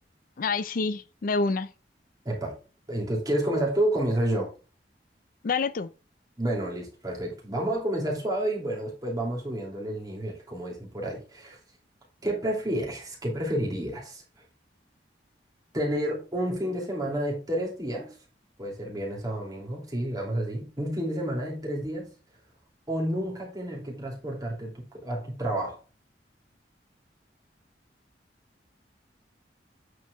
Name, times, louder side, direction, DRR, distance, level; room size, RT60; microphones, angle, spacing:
voice 1, 0.4-1.7 5.4-5.9, left 4 dB, 50° left, 0.4 m, -27 dB
voice 2, 2.2-2.6 2.9-4.5 6.4-11.6 12.2-14.2 15.7-18.2 18.6-22.1 22.9-25.8, right 1 dB, 20° right, 2.8 m, -30 dB
8.3 x 4.7 x 3.5 m
head